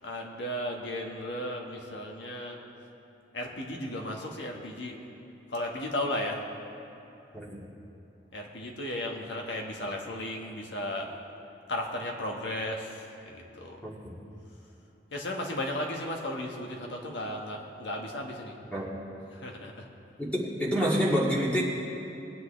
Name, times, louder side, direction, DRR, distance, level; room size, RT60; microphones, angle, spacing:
voice 1, 0.0-2.6 3.3-5.0 5.5-6.4 8.3-11.1 11.7-13.8 15.1-18.6 19.3-19.9, left 1 dB, 80° left, 0 dB, 1.6 m, -35 dB
voice 2, 20.2-21.6, equal, 5° left, -6 dB, 2.0 m, -27 dB
21.0 x 8.3 x 3.3 m, 2.8 s
head